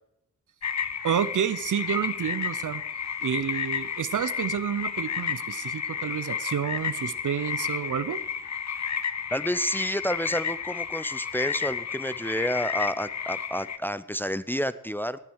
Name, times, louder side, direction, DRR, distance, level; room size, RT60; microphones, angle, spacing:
sound 1, 0.6-13.8, left 7 dB, 60° left, 0.9 m, -32 dB
voice 1, 1.0-2.8 3.2-8.2, right 8 dB, 70° right, 15 dB, 0.8 m, -29 dB
voice 2, 9.3-15.2, equal, 5° left, 14 dB, 0.7 m, -30 dB
19.0 x 7.5 x 6.5 m, 0.80 s
cardioid pair, 65°, 31 cm